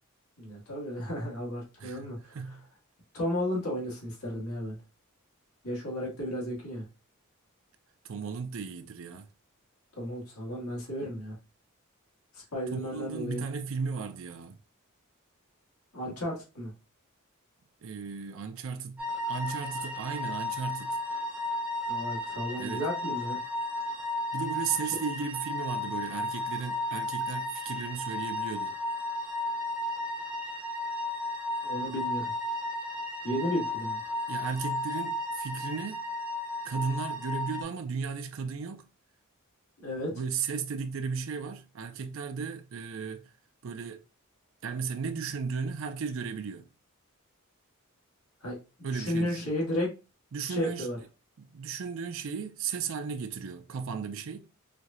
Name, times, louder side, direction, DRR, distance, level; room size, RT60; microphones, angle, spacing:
voice 1, 0.4-2.4 3.1-4.8 5.6-6.8 10.0-11.4 12.3-13.4 15.9-16.7 21.9-23.4 31.6-32.3 33.2-34.0 39.8-40.1 48.4-49.9 50.5-51.0, equal, 85° left, 1.9 m, -33 dB
voice 2, 1.8-2.7 8.0-9.3 12.7-14.6 17.8-21.0 22.6-22.9 24.3-28.8 34.3-36.1 36.6-38.9 40.1-43.3 43.6-44.0 44.6-46.7 48.8-49.5 50.3-50.9 51.4-54.4, right 5 dB, 60° right, 0.4 m, -35 dB
sound 1, 19.0-37.6, left 1 dB, 5° right, 0.6 m, -34 dB
4.5 x 2.7 x 2.4 m
head